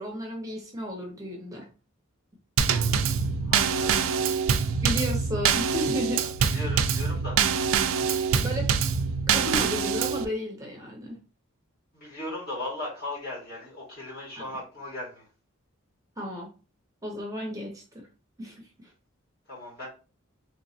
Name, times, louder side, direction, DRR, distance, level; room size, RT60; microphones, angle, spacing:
voice 1, 0.0-1.7 4.8-6.2 8.4-8.7 9.3-11.2 14.4-14.5 16.2-16.5 17.0-17.8 18.4-18.9, left 1 dB, 15° right, 0 dB, 0.7 m, -33 dB
Drum kit / Snare drum / Bass drum, 2.6-10.3, right 6 dB, 70° right, 0.3 m, -25 dB
voice 2, 3.4-4.2 6.4-7.4 11.9-15.2 19.5-19.9, left 1 dB, 45° left, -5 dB, 1.8 m, -37 dB
3.5 x 3.0 x 2.7 m, 0.34 s
head